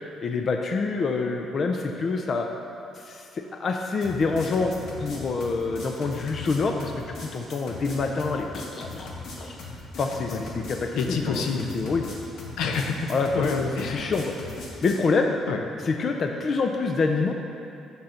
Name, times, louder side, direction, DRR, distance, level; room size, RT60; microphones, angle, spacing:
voice 1, 0.2-2.5 3.0-4.7 5.0-7.0 7.3-9.1 9.4-9.6 10.0-11.4 11.7-12.1 13.1-13.4 13.8-14.3 14.8-15.4 15.8-17.3, left 4 dB, 45° left, 3 dB, 0.5 m, -26 dB
sound 1, 4.0-15.0, left 3 dB, 65° left, 1.4 m, -39 dB
voice 2, 11.0-11.7 12.6-14.1 15.5-15.6, left 5 dB, 80° left, 3 dB, 0.7 m, -27 dB
6.5 x 5.4 x 5.7 m, 2.7 s
cardioid pair, 120°, 0 cm